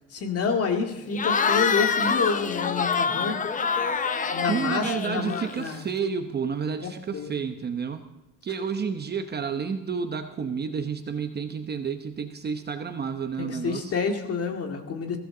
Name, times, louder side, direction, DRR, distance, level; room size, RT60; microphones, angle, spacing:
voice 1, 0.1-3.4 4.3-5.9 6.8-7.3 13.4-15.2, left 5 dB, 45° left, 4 dB, 2.1 m, -28 dB
Cheering / Crowd, 1.1-5.8, left 6 dB, 25° left, 0.7 m, -26 dB
voice 2, 4.5-8.1 8.4-13.9, right 6 dB, 30° right, 7 dB, 0.9 m, -30 dB
22.0 x 15.5 x 3.9 m, 1.0 s
cardioid pair, 165°, 34 cm